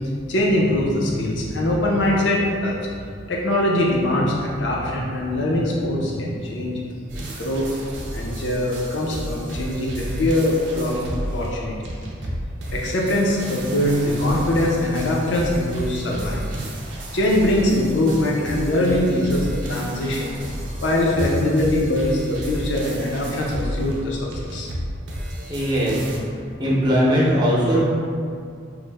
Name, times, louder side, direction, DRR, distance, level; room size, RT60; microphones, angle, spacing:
voice 1, 0.3-2.8 3.3-6.8 7.4-7.6 8.1-11.7 12.7-16.6 17.1-20.4 20.8-24.7, left 1 dB, 75° left, -2 dB, 0.5 m, -22 dB
sound 1, 7.1-26.2, equal, 75° right, 0.5 m, -32 dB
voice 2, 25.5-26.0 26.6-27.8, equal, 25° right, -7 dB, 0.6 m, -19 dB
3.0 x 2.0 x 3.4 m, 2.3 s
head